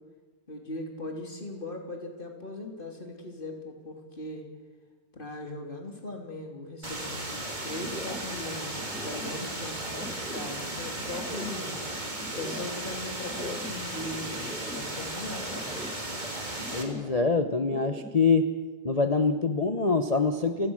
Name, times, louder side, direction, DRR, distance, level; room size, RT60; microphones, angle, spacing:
voice 1, 0.5-4.4 5.1-7.2 7.6-11.8 12.3-15.7, left 2 dB, 25° left, 3 dB, 3.3 m, -39 dB
sound 1, 6.8-16.8, right 1 dB, 20° right, 2.9 m, -36 dB
sound 2, 7.4-18.2, equal, ahead, 1.4 m, -43 dB
voice 2, 16.7-18.5 18.8-20.7, left 4 dB, 55° left, 8 dB, 0.4 m, -25 dB
29.5 x 17.0 x 6.4 m, 1.3 s
omnidirectional pair, 2.3 m